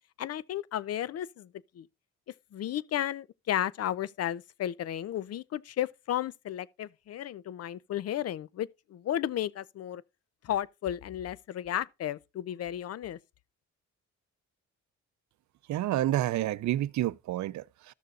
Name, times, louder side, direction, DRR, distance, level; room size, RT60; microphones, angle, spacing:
voice 1, 0.2-1.5 1.8-1.9 2.5-10.0 10.4-13.2, left 11 dB, 55° left, 0.6 m, -33 dB
voice 2, 15.7-17.9, right 14 dB, 70° right, 0.6 m, -29 dB
13.5 x 6.6 x 2.4 m
cardioid pair, 90°, 30 cm